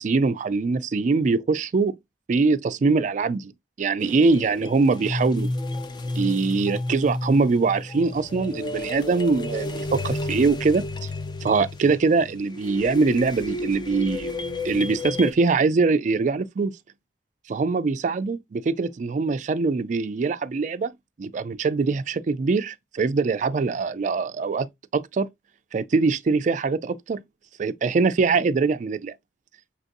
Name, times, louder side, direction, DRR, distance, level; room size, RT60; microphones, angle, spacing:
voice 1, 0.0-2.0 2.3-3.5 3.8-5.5 6.2-11.1 11.4-14.4 14.6-16.7 17.5-20.9 21.2-25.3 25.7-27.2 27.6-29.1, right 4 dB, 45° right, 0.3 m, -23 dB
sound 1, 4.0-15.3, left 2 dB, 25° left, 0.4 m, -32 dB
5.8 x 2.5 x 2.5 m
head